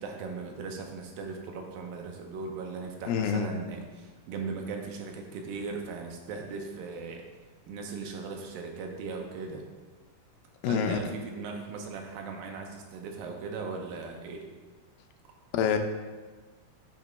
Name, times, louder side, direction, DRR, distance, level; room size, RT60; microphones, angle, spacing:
voice 1, 0.0-7.2 7.7-9.6 10.6-14.4, right 4 dB, 85° right, 2 dB, 2.5 m, -38 dB
voice 2, 3.1-3.5 10.6-11.0 15.5-15.8, left 8 dB, 85° left, 6 dB, 2.3 m, -26 dB
8.3 x 2.9 x 5.1 m, 1.3 s
omnidirectional pair, 4.0 m